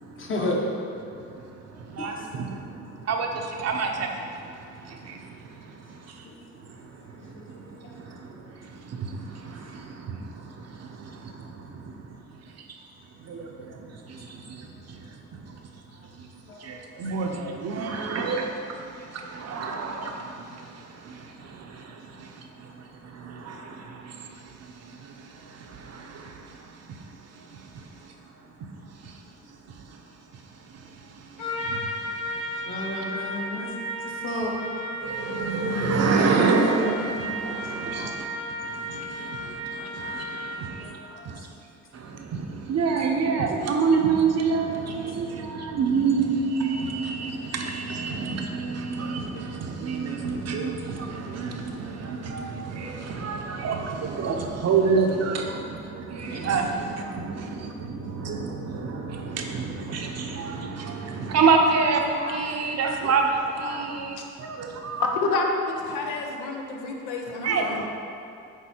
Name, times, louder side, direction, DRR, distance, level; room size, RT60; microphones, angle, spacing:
voice 1, 0.0-0.9 1.7-2.3 6.2-6.6 7.2-8.0 8.4-8.6 13.3-13.4 16.5-16.8 32.7-34.5 37.8-38.2 39.2-39.5 40.6-41.3 44.9-45.5 56.2-56.5 57.0-57.1 62.2-62.4 63.6-63.8, left 1 dB, 40° left, -1 dB, 1.1 m, -35 dB
voice 2, 1.0-6.3 6.5-12.8 13.2-29.2 29.5-32.9 35.0-38.3 38.6-41.0 41.2-41.5 41.9-65.0 67.4-67.9, right 4 dB, 55° right, 2 dB, 0.7 m, -29 dB
Trumpet, 31.4-40.7, right 1 dB, 75° left, 1.3 m, -34 dB
voice 3, 65.0-65.5 65.9-67.8, left 3 dB, 90° left, 1 dB, 0.8 m, -28 dB
8.0 x 2.7 x 4.4 m, 2.6 s
cardioid pair, 90°, 30 cm